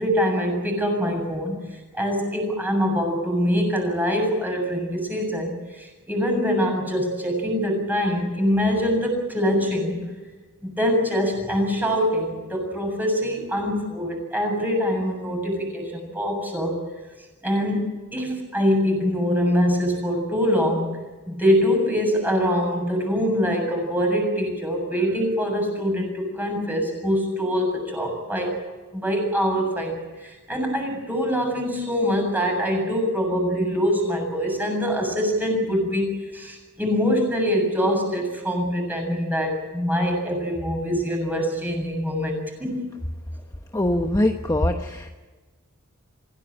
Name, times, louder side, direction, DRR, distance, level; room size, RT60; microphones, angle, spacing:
voice 1, 0.0-1.6 1.9-10.0 10.6-16.8 17.4-21.0 21.3-28.6 28.9-42.9, equal, 10° right, 2 dB, 7.2 m, -24 dB
voice 2, 43.7-45.1, left 1 dB, 15° left, 4 dB, 1.1 m, -22 dB
26.5 x 17.0 x 8.8 m, 1.3 s
head